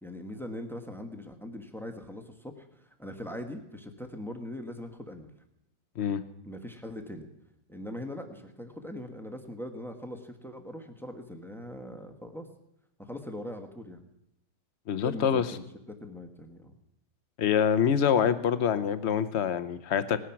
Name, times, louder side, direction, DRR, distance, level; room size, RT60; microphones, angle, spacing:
voice 1, 0.0-5.3 6.4-7.3 7.7-12.5 13.0-14.1 15.0-15.6 16.0-16.8, left 1 dB, ahead, 5 dB, 1.0 m, -41 dB
voice 2, 14.9-15.4 17.4-20.2, left 8 dB, 55° left, 13 dB, 0.8 m, -25 dB
18.5 x 9.8 x 5.9 m, 0.83 s
omnidirectional pair, 1.9 m